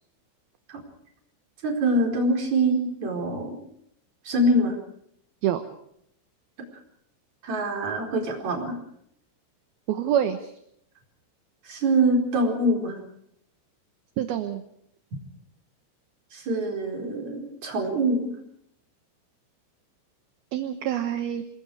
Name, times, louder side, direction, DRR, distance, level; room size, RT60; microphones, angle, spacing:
voice 1, 1.6-3.6 4.3-4.8 7.4-8.8 11.7-13.0 16.3-18.3, right 1 dB, 35° right, 2 dB, 5.4 m, -24 dB
voice 2, 9.9-10.4 14.2-14.6 20.5-21.4, right 10 dB, 70° right, 7 dB, 2.5 m, -26 dB
27.5 x 21.0 x 4.9 m, 0.71 s
omnidirectional pair, 5.7 m